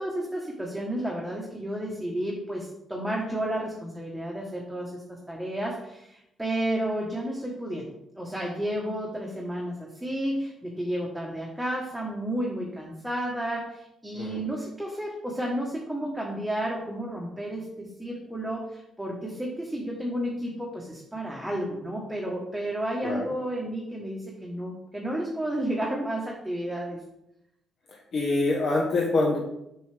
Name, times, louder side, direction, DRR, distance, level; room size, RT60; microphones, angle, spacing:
voice 1, 0.0-7.9 8.1-27.0, right 1 dB, 5° right, -3 dB, 1.2 m, -32 dB
voice 2, 28.1-29.4, left 2 dB, 60° left, -3 dB, 1.2 m, -25 dB
6.2 x 5.5 x 3.4 m, 0.83 s
cardioid pair, 90°, 0 cm